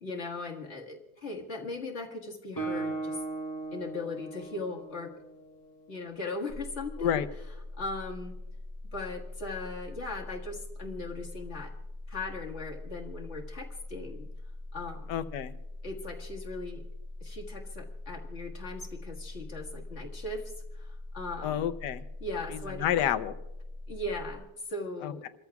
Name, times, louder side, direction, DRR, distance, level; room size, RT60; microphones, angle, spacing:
voice 1, 0.0-3.2 3.7-5.1 5.9-7.2 7.8-8.4 8.9-11.7 12.1-14.3 14.7-15.1 15.8-16.8 17.2-21.7 22.2-22.9 23.9-25.3, left 2 dB, 45° left, 0 dB, 1.9 m, -38 dB
Guitar, 2.6-6.2, right 3 dB, 10° left, 4.1 m, -38 dB
sound 1, 6.5-24.4, left 2 dB, 30° right, 5.3 m, -42 dB
voice 2, 15.1-15.5 21.4-22.0 22.8-23.3 25.0-25.3, left 10 dB, 90° left, 12 dB, 1.3 m, -29 dB
28.5 x 14.0 x 2.3 m, 0.99 s
omnidirectional pair, 1.8 m